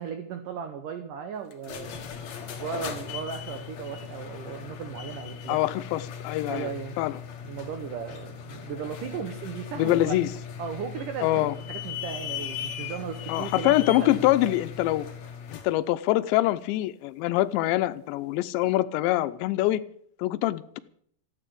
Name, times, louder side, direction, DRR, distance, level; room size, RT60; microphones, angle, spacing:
voice 1, 0.0-1.9 2.6-5.6 6.5-7.0 7.4-10.2 10.6-14.6, right 7 dB, 90° right, 1.8 m, -36 dB
sound 1, 1.5-15.8, left 8 dB, 60° left, 1.9 m, -38 dB
voice 2, 5.5-6.7 7.0-7.1 9.8-10.3 11.2-11.5 13.3-15.1 15.5-19.8 20.2-20.8, left 16 dB, 80° left, 2.8 m, -24 dB
14.5 x 9.8 x 8.5 m
omnidirectional pair, 5.6 m